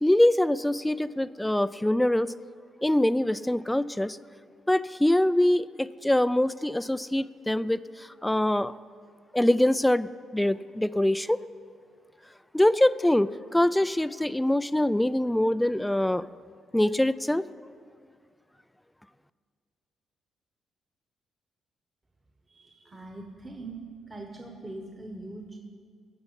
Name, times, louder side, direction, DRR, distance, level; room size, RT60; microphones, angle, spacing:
voice 1, 0.0-2.3 2.8-4.2 4.7-8.7 9.3-11.4 12.5-16.3 16.7-17.4, left 1 dB, 5° left, 16 dB, 0.3 m, -24 dB
voice 2, 22.5-23.8 24.1-25.6, right 2 dB, 25° right, 2 dB, 1.3 m, -42 dB
15.0 x 5.5 x 9.8 m, 2.1 s
cardioid pair, 90°, 0 cm